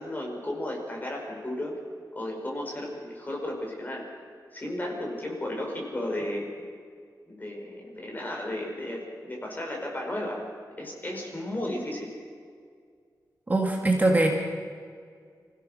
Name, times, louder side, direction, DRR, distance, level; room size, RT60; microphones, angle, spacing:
voice 1, 0.0-1.7 2.1-4.0 4.5-6.5 7.3-10.4 10.8-12.1, left 1 dB, 25° left, 0 dB, 4.8 m, -34 dB
voice 2, 13.5-14.3, right 2 dB, 25° right, 1 dB, 1.8 m, -22 dB
26.0 x 16.0 x 6.4 m, 2.1 s
wide cardioid pair, 150°, 7 cm